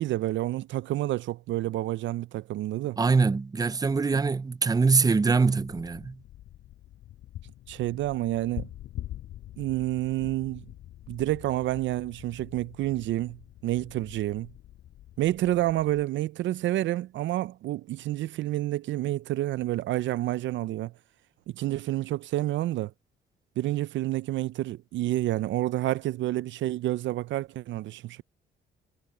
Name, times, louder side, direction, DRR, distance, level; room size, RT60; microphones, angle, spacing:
voice 1, 0.0-3.0 7.7-8.7 9.6-10.6 11.1-13.4 13.6-14.5 15.2-20.9 21.5-22.9 23.6-28.2, right 15 dB, 70° right, 0.4 m, -29 dB
voice 2, 3.0-6.2, right 4 dB, 20° right, 0.6 m, -23 dB
sound 1, 5.6-16.0, left 13 dB, 80° left, 7.1 m, -45 dB
cardioid pair, 90°, 20 cm